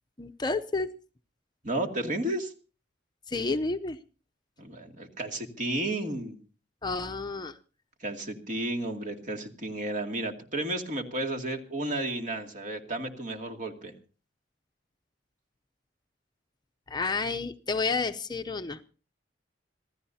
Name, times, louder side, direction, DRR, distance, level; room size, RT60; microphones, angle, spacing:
voice 1, 0.2-0.9 3.3-4.0 6.8-7.6 16.9-18.8, left 3 dB, 25° left, 8 dB, 0.7 m, -30 dB
voice 2, 1.6-2.5 4.6-6.4 8.0-13.9, right 1 dB, 45° right, 3 dB, 2.4 m, -32 dB
26.0 x 16.0 x 2.8 m, 0.36 s
head